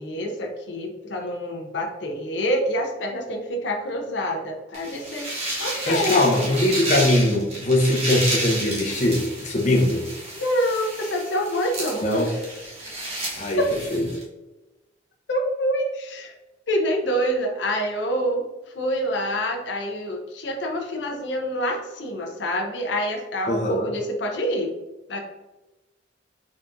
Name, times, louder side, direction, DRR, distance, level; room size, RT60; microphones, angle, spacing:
voice 1, 0.0-6.3 10.4-12.3 13.6-13.7 15.3-16.3 16.7-18.4 18.7-24.7 25.1-25.2, equal, 75° left, 2 dB, 0.6 m, -26 dB
sound 1, 4.7-14.2, right 1 dB, 35° right, 1.2 m, -31 dB
voice 2, 5.9-10.0 12.0-12.3 13.4-13.6 13.9-14.0 23.5-23.9, left 1 dB, 40° left, -1 dB, 0.9 m, -21 dB
4.0 x 3.4 x 2.5 m, 1.1 s
head